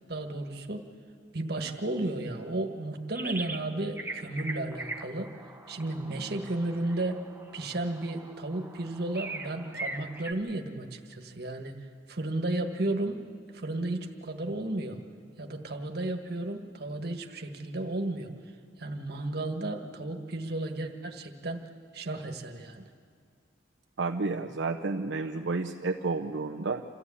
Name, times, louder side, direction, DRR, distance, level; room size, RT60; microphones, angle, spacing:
voice 1, 0.1-0.9 1.3-5.3 5.7-7.2 7.5-11.7 12.1-13.2 13.5-15.0 15.4-18.3 18.8-21.6 21.9-22.9, right 2 dB, 60° right, 4 dB, 1.6 m, -33 dB
sound 1, 3.1-3.7 4.0-10.3, right 2 dB, 10° right, 1.0 m, -41 dB
voice 2, 24.0-26.8, right 3 dB, 80° right, 2 dB, 0.7 m, -31 dB
27.5 x 14.5 x 8.5 m, 2.2 s
head